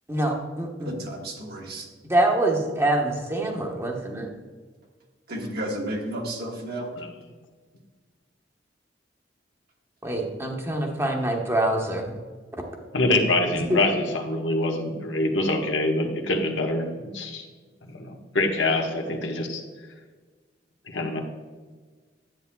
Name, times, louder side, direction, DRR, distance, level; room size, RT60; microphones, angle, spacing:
voice 1, 0.1-1.0 2.1-4.3 10.0-12.1 13.7-13.8, right 1 dB, 15° right, 1 dB, 1.1 m, -25 dB
voice 2, 0.8-1.9 5.3-6.9, right 1 dB, 60° right, 1 dB, 1.3 m, -32 dB
voice 3, 12.9-16.9 17.1-17.4 17.9-19.6 20.9-21.2, left 2 dB, 85° left, 2 dB, 1.2 m, -25 dB
10.5 x 8.5 x 2.3 m, 1.4 s
head